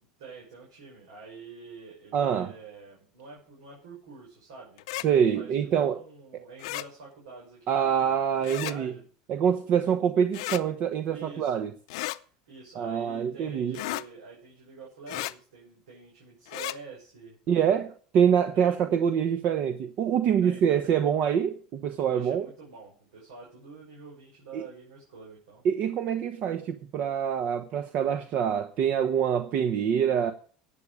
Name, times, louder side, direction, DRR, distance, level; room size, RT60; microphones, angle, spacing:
voice 1, 0.2-9.0 11.1-11.6 12.5-17.8 18.5-18.8 20.4-20.8 22.0-25.6, right 4 dB, 90° right, 6.1 m, -47 dB
voice 2, 2.1-2.5 5.0-6.0 6.3-6.4 7.7-8.9 9.3-11.7 12.7-13.8 17.5-17.9 18.1-22.5 24.5-24.6 25.6-30.3, right 8 dB, 55° right, 1.1 m, -25 dB
sound 1, 4.8-5.1 6.6-6.9 8.4-8.8 10.3-10.6 11.9-12.2 13.7-14.1 15.1-15.3 16.5-16.8, left 19 dB, 80° left, 0.6 m, -34 dB
14.5 x 8.7 x 5.0 m
supercardioid pair, 100°, 3 cm